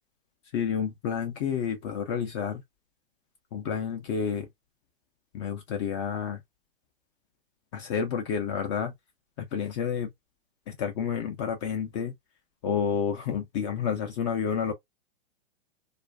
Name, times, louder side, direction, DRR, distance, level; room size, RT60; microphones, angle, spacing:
voice 1, 0.5-2.6 3.5-4.5 5.3-6.4 7.7-8.9 9.4-10.1 10.7-12.1 12.6-14.7, left 7 dB, 30° left, 0.4 m, -30 dB
2.4 x 2.4 x 2.2 m
hypercardioid pair, 130°, 31 cm